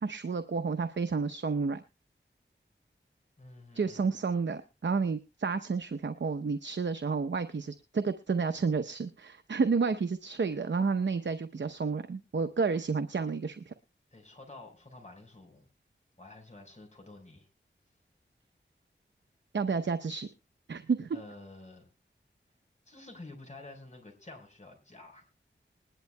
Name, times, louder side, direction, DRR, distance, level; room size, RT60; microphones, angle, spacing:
voice 1, 0.0-1.8 3.7-13.7 19.5-20.3 20.7-21.2, right 4 dB, 65° right, 9 dB, 0.8 m, -30 dB
voice 2, 3.4-4.1 14.1-15.7 16.2-17.5 21.1-21.9 22.9-25.2, left 2 dB, 35° left, 2 dB, 4.7 m, -50 dB
21.0 x 11.0 x 2.2 m, 0.27 s
wide cardioid pair, 60°, 20 cm